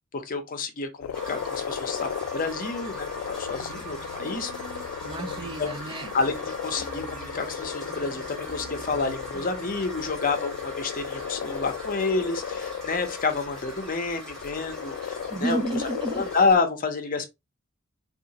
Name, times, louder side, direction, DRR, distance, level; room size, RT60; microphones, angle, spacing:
voice 1, 0.1-4.5 5.4-15.9 16.1-17.3, left 4 dB, 45° left, 0.6 m, -29 dB
sound 1, 1.0-16.5, left 8 dB, 75° left, 0.3 m, -36 dB
sound 2, 1.1-16.6, right 1 dB, 5° left, 1.1 m, -41 dB
sound 3, 3.3-10.2, right 1 dB, 65° right, 0.8 m, -47 dB
voice 2, 5.0-6.1 15.3-16.2, right 2 dB, 25° right, 0.4 m, -31 dB
3.6 x 2.4 x 2.8 m
head